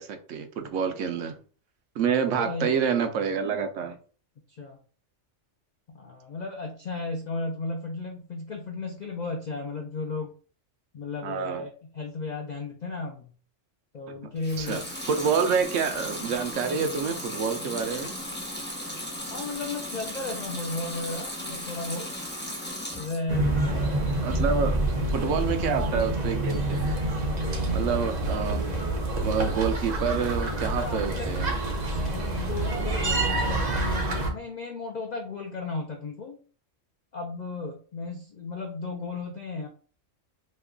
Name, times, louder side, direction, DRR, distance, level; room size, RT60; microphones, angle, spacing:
voice 1, 0.0-1.4 2.0-4.0 11.2-11.6 14.6-14.8 15.1-18.1 24.2-24.8 25.1-27.0 27.7-28.6 29.2-31.5, right 6 dB, 80° right, 7 dB, 0.9 m, -27 dB
voice 2, 2.3-2.7 4.5-4.8 5.9-10.3 10.9-13.3 13.9-14.8 19.3-22.1 22.9-23.6 24.4-24.7 25.1-25.6 30.6-31.3 32.0-36.4 37.1-39.7, left 3 dB, 65° left, 3 dB, 0.4 m, -35 dB
Water tap faucet / Sink (filling or washing) / Liquid, 14.4-23.3 23.7-24.4, left 1 dB, 10° left, 0.6 m, -36 dB
sound 1, 23.3-34.3, right 2 dB, 40° right, 0.7 m, -27 dB
3.1 x 2.2 x 3.6 m, 0.40 s
omnidirectional pair, 1.3 m